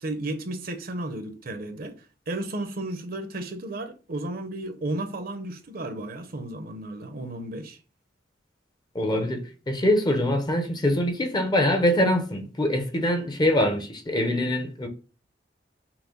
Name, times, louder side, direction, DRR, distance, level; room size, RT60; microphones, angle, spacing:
voice 1, 0.0-1.9 2.3-7.8, right 1 dB, 55° right, 0.7 m, -33 dB
voice 2, 8.9-9.4 9.7-14.9, left 1 dB, 25° left, 0.7 m, -23 dB
5.9 x 2.1 x 3.8 m
head